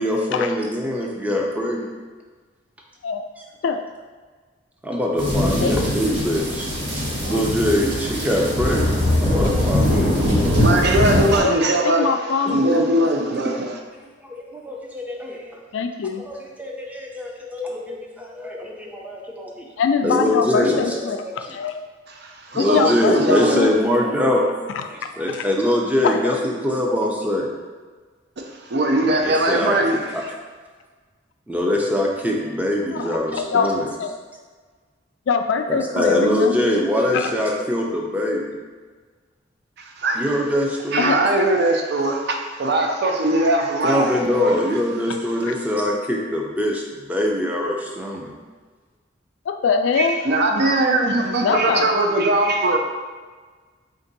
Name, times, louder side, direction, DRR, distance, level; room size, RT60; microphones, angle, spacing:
voice 1, 0.0-1.9 4.8-6.7 7.2-10.6 12.5-12.8 13.3-13.6 14.3-15.6 16.2-19.7 20.0-21.5 22.5-24.5 24.9-27.5 29.2-29.8 30.1-30.2 31.5-33.9 35.7-38.6 40.1-41.2 43.8-48.3, left 1 dB, 10° right, -1 dB, 0.5 m, -23 dB
sound 1, 5.2-11.4, left 1 dB, 80° right, 1.4 m, -21 dB
voice 2, 10.6-12.1 12.5-13.8 22.1-23.6 28.4-30.0 39.8-40.2 40.9-44.5 50.0-52.8, right 1 dB, 60° right, 3 dB, 0.5 m, -20 dB
voice 3, 11.8-12.6 15.7-16.2 19.8-21.8 22.5-23.7 24.8-24.9 25.3-25.5 26.0-26.4 32.9-34.1 35.3-36.8 37.1-37.3 41.0-41.2 49.5-50.2 51.4-51.9, left 5 dB, 70° left, 7 dB, 0.3 m, -23 dB
4.4 x 2.6 x 3.9 m, 1.4 s
head